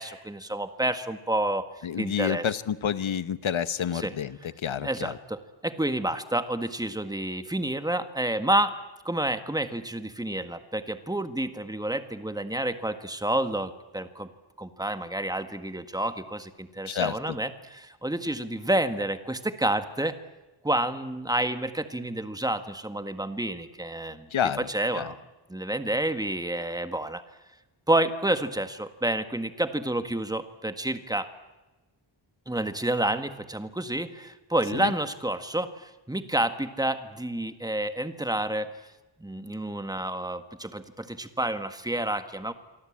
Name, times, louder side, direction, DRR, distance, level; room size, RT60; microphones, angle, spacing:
voice 1, 0.0-1.6 2.0-2.4 3.9-4.1 4.8-8.7 9.0-14.3 14.6-20.1 20.6-24.3 24.6-25.2 25.5-27.2 27.9-31.3 32.5-38.7 39.2-42.5, right 1 dB, 10° right, 9 dB, 1.7 m, -29 dB
voice 2, 1.8-5.1 16.8-17.4 24.3-24.7 24.9-25.1 34.7-34.9, left 8 dB, 70° left, 14 dB, 1.2 m, -29 dB
27.0 x 24.0 x 8.8 m, 1.1 s
wide cardioid pair, 130°, 49 cm